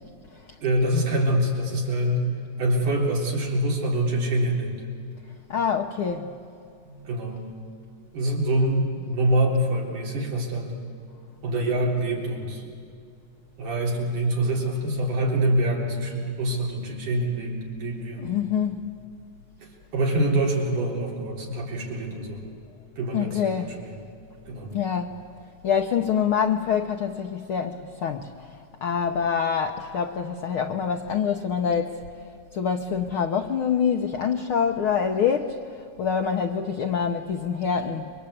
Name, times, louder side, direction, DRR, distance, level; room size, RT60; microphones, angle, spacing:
voice 1, 0.6-2.3 2.6-4.8 6.8-7.5 8.1-10.8 11.4-12.8 13.6-18.3 19.6-22.4 23.0-24.0 24.5-24.7, right 1 dB, 70° right, -2 dB, 5.3 m, -25 dB
voice 2, 5.5-6.3 18.2-18.9 23.1-23.7 24.7-25.2 25.6-28.3 28.8-32.0 32.5-38.1, left 7 dB, 80° left, 4 dB, 1.2 m, -25 dB
28.5 x 23.0 x 8.6 m, 2.4 s
omnidirectional pair, 3.8 m